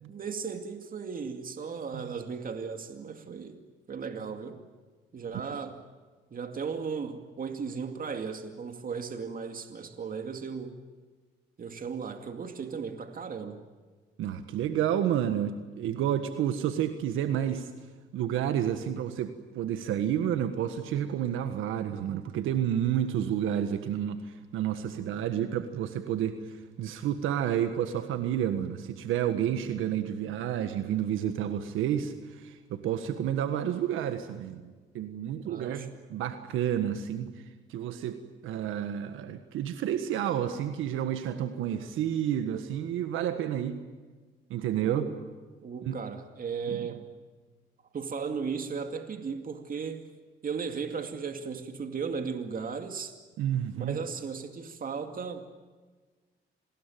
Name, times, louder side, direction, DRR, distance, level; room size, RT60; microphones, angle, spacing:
voice 1, 0.1-3.6 3.9-4.6 5.1-5.8 6.3-10.8 11.6-13.6 35.4-35.9 44.8-45.0 45.6-47.1 47.9-50.1 50.4-53.2 53.8-55.5, right 5 dB, 45° right, 6 dB, 2.4 m, -36 dB
voice 2, 14.2-17.8 18.1-34.7 34.9-43.8 44.5-45.1 45.8-46.0 46.7-47.0 53.4-54.0, right 10 dB, 90° right, 8 dB, 1.6 m, -30 dB
27.5 x 20.5 x 9.3 m, 1.4 s
cardioid pair, 90°, 20 cm